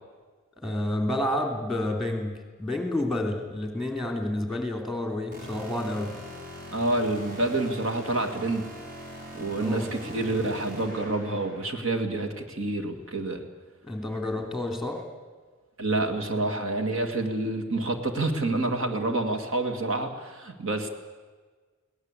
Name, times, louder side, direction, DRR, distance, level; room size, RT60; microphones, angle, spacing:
voice 1, 0.6-6.2 9.5-9.9 13.8-15.0, left 1 dB, ahead, 4 dB, 3.1 m, -30 dB
sound 1, 5.3-11.8, equal, 40° right, 6.0 m, -41 dB
voice 2, 6.7-8.7 9.3-13.4 15.8-20.9, right 2 dB, 65° right, 6 dB, 2.3 m, -28 dB
23.0 x 17.5 x 8.2 m, 1.4 s
head